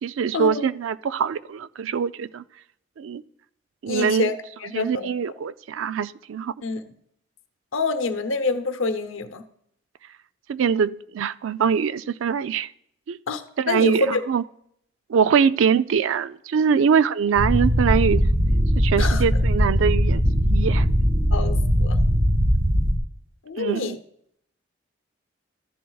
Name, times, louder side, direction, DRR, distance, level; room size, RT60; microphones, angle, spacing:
voice 1, 0.0-2.4 3.0-3.2 3.8-4.3 4.7-6.5 10.5-12.7 13.1-13.2 13.6-14.4 15.1-18.2 18.8-20.9 23.6-24.0, right 6 dB, 80° right, 15 dB, 0.4 m, -23 dB
voice 2, 3.9-5.1 6.6-6.8 7.7-9.4 13.3-14.2 19.0-19.3 21.3-22.0 23.4-24.0, left 3 dB, 85° left, 9 dB, 0.8 m, -26 dB
sound 1, 17.4-23.0, equal, 30° right, 1.4 m, -20 dB
14.0 x 11.0 x 2.3 m, 0.72 s
head